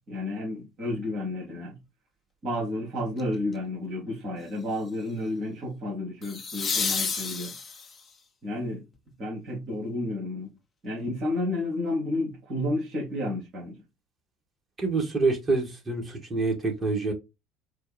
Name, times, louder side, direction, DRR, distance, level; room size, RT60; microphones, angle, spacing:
voice 1, 0.1-1.8 2.4-7.5 8.4-8.8 9.2-10.5 10.8-13.8, left 1 dB, 45° right, 2.1 m, -31 dB
sound 1, 3.2-3.5 6.2-8.1 11.0-11.1, left 5 dB, 30° left, 0.9 m, -30 dB
voice 2, 14.8-17.1, right 3 dB, 25° right, 1.8 m, -26 dB
4.5 x 2.3 x 4.2 m
figure-of-eight pair, 60°, 0 cm